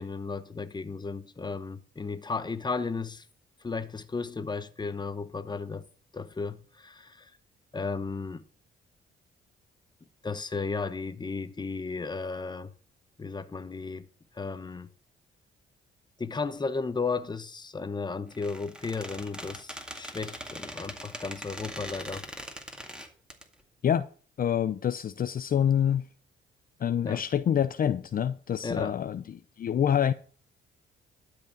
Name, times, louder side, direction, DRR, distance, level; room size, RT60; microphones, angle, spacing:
voice 1, 0.0-3.2 3.6-5.9 6.1-7.3 7.7-8.4 10.2-12.7 13.2-14.1 14.3-14.9 16.2-22.3 27.0-27.2 28.6-28.9, left 4 dB, 20° left, 1.0 m, -34 dB
Squeak, 18.3-23.4, equal, 5° right, 2.1 m, -41 dB
voice 2, 24.4-26.0 26.8-29.2 29.6-30.1, left 9 dB, 45° left, 0.6 m, -26 dB
12.5 x 5.0 x 8.4 m
cardioid pair, 90°, 20 cm